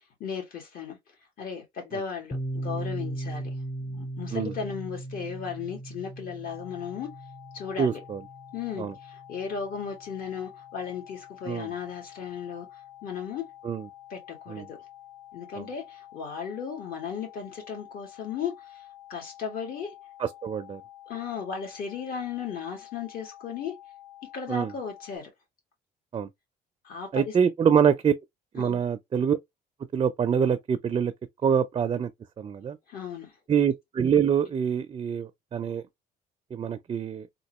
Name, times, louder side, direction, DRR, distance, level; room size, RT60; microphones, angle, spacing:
voice 1, 0.2-1.0 1.4-3.5 3.8-7.1 7.5-8.0 8.5-13.5 14.1-14.8 15.3-18.8 19.1-19.9 21.1-23.7 24.3-25.3 26.8-27.4 28.6-28.8 32.9-33.3, left 6 dB, 60° left, 2.0 m, -36 dB
Piano, 2.3-9.7, right 1 dB, 10° left, 0.7 m, -38 dB
sound 1, 6.5-25.2, left 13 dB, 75° left, 0.9 m, -49 dB
voice 2, 7.8-8.2 8.8-8.9 11.5-11.7 13.6-13.9 14.5-14.7 20.2-20.8 24.5-24.7 26.1-26.3 27.1-28.1 28.5-29.4 29.9-31.1 31.4-32.1 32.4-32.8 33.5-35.8 36.5-37.3, right 7 dB, 30° right, 0.4 m, -25 dB
3.6 x 2.6 x 2.9 m
cardioid pair, 110°, 17 cm